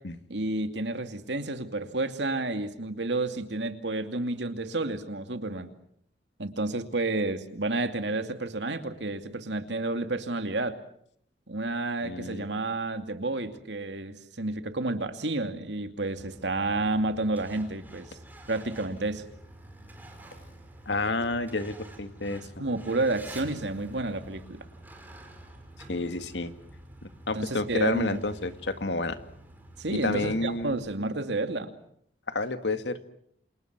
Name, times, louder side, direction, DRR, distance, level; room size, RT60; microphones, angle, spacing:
voice 1, 0.3-5.7 6.4-10.8 11.5-18.1 18.5-19.2 22.6-24.7 27.3-28.2 29.8-31.8, right 2 dB, 75° right, 8 dB, 2.5 m, -30 dB
voice 2, 12.0-12.5 20.9-22.4 25.9-26.5 27.0-29.2 29.9-30.8 32.3-33.1, left 2 dB, 80° left, 9 dB, 2.1 m, -30 dB
Truck, 16.2-30.7, right 1 dB, 10° right, 5.5 m, -48 dB
28.5 x 28.0 x 6.1 m, 0.67 s
head